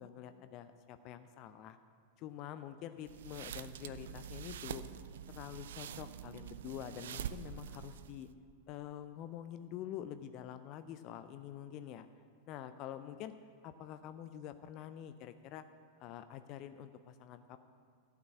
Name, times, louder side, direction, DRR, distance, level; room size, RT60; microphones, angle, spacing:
voice 1, 0.0-1.8 2.2-4.9 5.3-8.3 8.7-12.1 12.5-13.3 13.6-15.6 16.0-17.6, left 10 dB, 40° left, 10 dB, 0.4 m, -47 dB
sound 1, 3.0-8.3, right 9 dB, 60° right, 0.3 m, -45 dB
12.5 x 5.9 x 8.5 m, 2.1 s
figure-of-eight pair, 90°, 0 cm